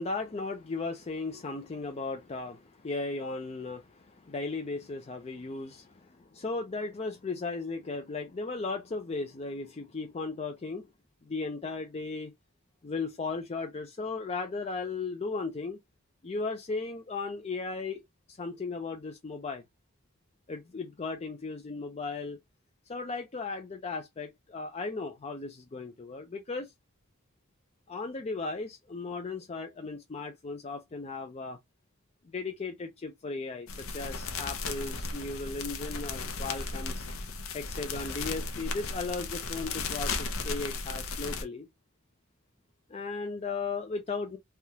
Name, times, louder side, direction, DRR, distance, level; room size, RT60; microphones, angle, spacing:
voice 1, 0.0-10.9 11.2-12.3 12.8-15.8 16.2-18.0 18.3-19.6 20.5-22.4 22.9-26.7 27.9-31.6 32.3-37.1 37.5-41.7 42.9-44.4, left 3 dB, 30° left, 0.4 m, -36 dB
sound 1, 33.7-41.4, left 4 dB, 75° left, 0.7 m, -35 dB
3.4 x 2.3 x 2.7 m
head